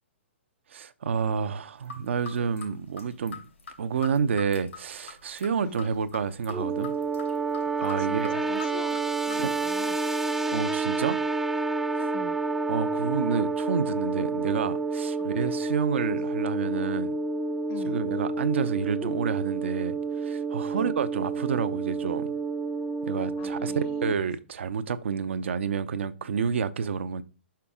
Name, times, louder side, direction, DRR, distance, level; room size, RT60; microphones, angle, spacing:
voice 1, 0.7-3.4 3.8-6.9 7.8-8.4 9.4-9.5 10.5-11.2 11.9-12.1 12.7-17.1 17.9-22.3 23.0-27.2, right 6 dB, 70° right, 0.7 m, -29 dB
sound 1, 1.8-9.4, left 5 dB, 85° left, 3.2 m, -45 dB
sound 2, 6.5-24.1, right 4 dB, 5° right, 0.4 m, -29 dB
voice 2, 7.8-9.0 9.3-10.0 12.0-12.4 15.2-15.6 17.7-18.0 20.8-20.9 23.4-24.2, left 7 dB, 35° left, 0.8 m, -43 dB
5.9 x 5.8 x 3.6 m
hypercardioid pair, 130°, 7 cm